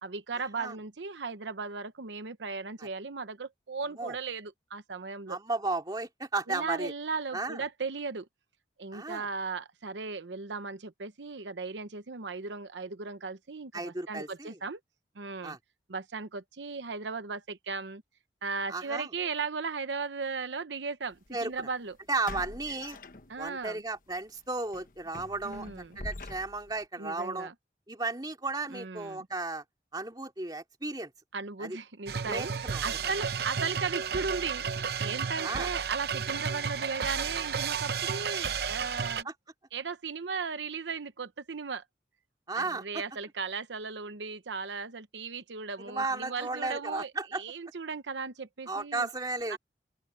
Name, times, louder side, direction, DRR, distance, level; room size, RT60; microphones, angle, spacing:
voice 1, 0.0-5.4 6.5-8.3 8.8-14.8 15.2-15.6 15.9-18.0 18.4-22.0 23.3-23.8 25.4-26.0 27.0-27.5 28.7-29.3 31.3-39.3 39.7-41.8 42.6-49.1 49.5-49.6, right 4 dB, 90° right, 0.9 m, -37 dB
voice 2, 5.3-6.9 7.3-7.6 8.9-9.3 13.7-14.6 15.4-15.6 18.7-19.1 21.3-21.7 22.1-23.0 23.4-25.7 26.0-27.5 27.9-29.6 29.9-31.1 31.6-31.8 32.3-32.8 35.4-35.7 39.2-39.3 42.5-43.0 45.8-47.4 48.7-49.6, right 3 dB, 20° right, 2.5 m, -34 dB
sound 1, 21.1-21.3 22.2-23.7 24.1-24.3 24.7-26.8, left 2 dB, 50° left, 1.2 m, -44 dB
sound 2, 32.1-39.2, right 6 dB, 60° right, 0.7 m, -32 dB
open air
head